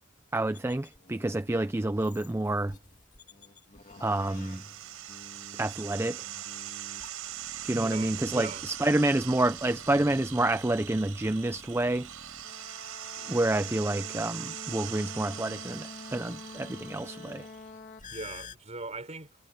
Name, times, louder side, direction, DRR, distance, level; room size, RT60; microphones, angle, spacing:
voice 1, 0.3-2.7 4.0-4.6 5.6-6.3 7.6-12.1 13.3-17.5, right 2 dB, 10° right, 0.4 m, -28 dB
sound 1, 0.5-18.5, left 3 dB, 35° left, 2.6 m, -49 dB
sound 2, 3.9-17.7, right 11 dB, 90° right, 4.8 m, -42 dB
voice 2, 7.7-8.7 18.1-19.3, right 2 dB, 30° right, 5.0 m, -40 dB
head